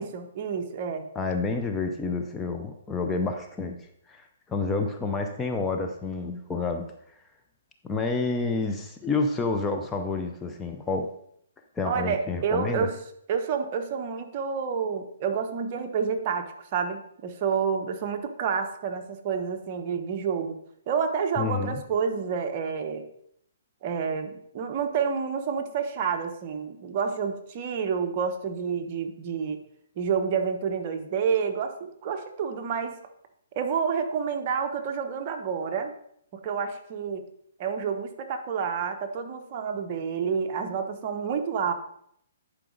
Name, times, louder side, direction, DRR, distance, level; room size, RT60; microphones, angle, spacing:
voice 1, 0.0-1.1 11.8-13.0 13.3-20.6 20.9-23.1 23.8-29.6 30.0-32.9 33.5-35.9 36.4-37.3 37.6-41.7, right 6 dB, 40° right, 5 dB, 1.0 m, -29 dB
voice 2, 1.1-3.8 4.1-6.9 7.8-11.1 11.8-12.9 21.4-21.8, left 3 dB, 10° left, 4 dB, 0.6 m, -29 dB
10.5 x 4.9 x 3.9 m, 0.70 s
hypercardioid pair, 145°, 0 cm